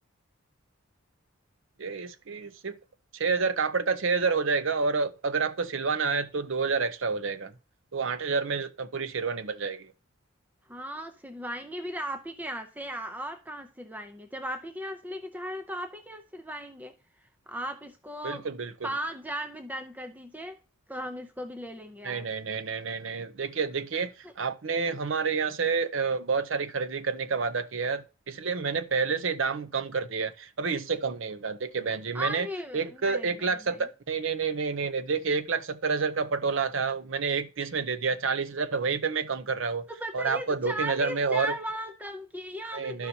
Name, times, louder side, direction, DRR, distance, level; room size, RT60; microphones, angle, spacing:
voice 1, 1.8-2.8 3.1-7.5 7.9-9.9 18.2-18.7 22.0-32.5 32.7-39.8 40.1-41.5 42.7-43.1, right 5 dB, 65° right, 0.7 m, -29 dB
voice 2, 10.7-16.9 17.5-18.4 18.8-20.6 20.9-22.3 24.2-24.3 32.1-33.9 39.9-43.1, equal, 10° right, 0.5 m, -37 dB
12.5 x 5.6 x 2.8 m
head